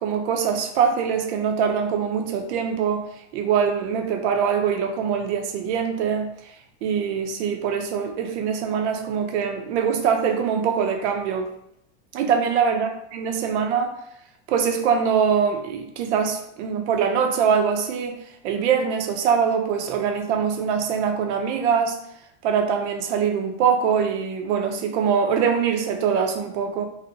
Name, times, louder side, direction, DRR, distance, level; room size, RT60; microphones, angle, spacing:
voice 1, 0.0-3.0 3.3-6.3 6.8-11.5 12.1-13.9 14.5-18.2 18.4-22.0 22.4-26.8, right 7 dB, 80° right, 4 dB, 0.5 m, -23 dB
2.6 x 2.1 x 2.6 m, 0.75 s
supercardioid pair, 155°, 34 cm